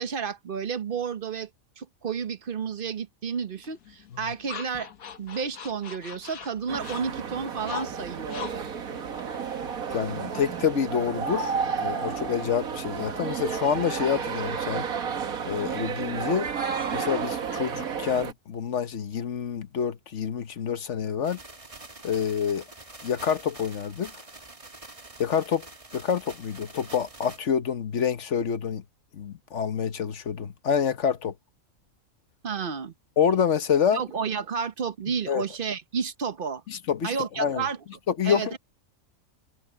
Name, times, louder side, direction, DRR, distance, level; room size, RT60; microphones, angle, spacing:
voice 1, 0.0-1.5 1.8-4.9 5.2-8.7 32.4-32.9 33.9-36.6 37.0-37.8 38.2-38.6, right 6 dB, 45° right, 1.1 m, -31 dB
sound 1, 3.6-10.1, left 7 dB, 85° left, 1.7 m, -42 dB
sound 2, 6.7-18.3, right 6 dB, 80° right, 1.9 m, -32 dB
voice 2, 9.9-11.5 11.8-14.9 15.5-16.5 16.9-21.4 22.0-22.6 23.0-24.1 25.2-25.7 25.9-28.8 29.1-31.3 33.2-34.0 35.3-35.4 36.7-37.1 37.4-37.6 38.1-38.6, left 7 dB, 60° left, 1.3 m, -27 dB
sound 3, 21.2-27.4, right 2 dB, 25° right, 1.7 m, -46 dB
omnidirectional pair, 1.5 m